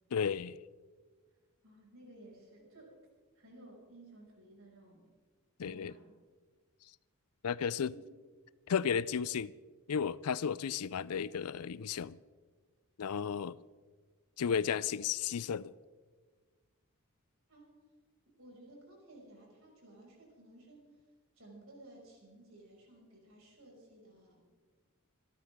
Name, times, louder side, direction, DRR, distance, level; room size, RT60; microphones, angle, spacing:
voice 1, 0.1-0.6 5.6-5.9 7.4-7.9 8.7-9.5 9.9-12.2 13.0-13.6 14.4-15.7, left 7 dB, 90° left, 0.5 m, -33 dB
voice 2, 1.6-3.0 3.3-5.1 5.6-6.1 7.9-8.0 17.5-17.8 18.4-20.9 21.3-24.5, right 1 dB, 70° right, 6.0 m, -56 dB
27.0 x 12.5 x 3.6 m
head